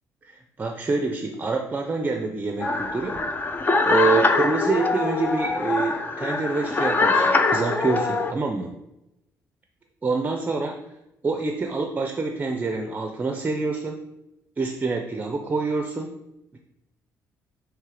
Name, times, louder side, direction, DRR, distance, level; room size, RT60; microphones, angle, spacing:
voice 1, 0.2-3.2 3.9-8.8 10.0-10.8 11.2-14.0 14.6-16.1 16.5-16.6, right 3 dB, 25° right, 4 dB, 0.5 m, -26 dB
sound 1, 2.6-8.3, left 3 dB, 30° left, 0.6 m, -23 dB
6.5 x 3.2 x 4.8 m, 0.91 s
cardioid pair, 100°, 7 cm